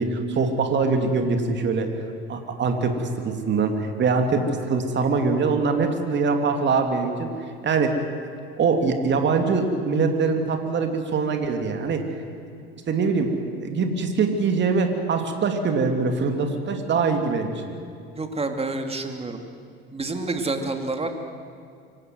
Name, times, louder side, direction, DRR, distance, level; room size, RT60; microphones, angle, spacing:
voice 1, 0.0-1.9 2.3-7.3 7.6-7.9 8.6-12.0 12.9-13.3 13.6-17.5, right 4 dB, 35° right, 5 dB, 2.8 m, -23 dB
voice 2, 18.1-19.4 19.9-21.1, right 3 dB, 20° right, 5 dB, 2.7 m, -28 dB
25.0 x 17.5 x 7.9 m, 2.3 s
hypercardioid pair, 70°, 30 cm